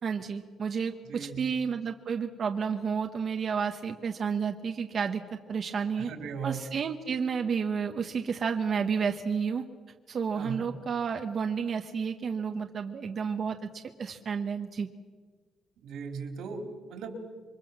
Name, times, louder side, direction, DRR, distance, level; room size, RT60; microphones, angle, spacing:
voice 1, 0.0-6.1 6.4-9.6 10.1-13.7 14.0-14.9, right 6 dB, 40° right, 5 dB, 1.2 m, -31 dB
voice 2, 1.1-1.5 6.0-6.6 10.3-10.7 15.8-17.1, right 6 dB, 85° right, 5 dB, 4.0 m, -38 dB
27.0 x 24.0 x 7.4 m, 1.5 s
cardioid pair, 155°, 0 cm